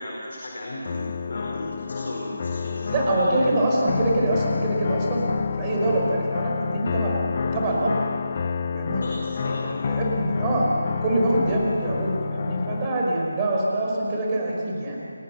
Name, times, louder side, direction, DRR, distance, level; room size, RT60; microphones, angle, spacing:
voice 1, 0.0-3.2 8.7-9.6, left 1 dB, 55° left, -1 dB, 4.5 m, -36 dB
sound 1, 0.8-12.9, left 5 dB, 40° left, 0.9 m, -29 dB
voice 2, 2.9-5.3 5.6-8.0 8.7-9.0 9.4-10.7 11.0-15.0, right 1 dB, 20° right, -2 dB, 5.5 m, -24 dB
29.5 x 18.5 x 6.9 m, 2.7 s
figure-of-eight pair, 155°, 0 cm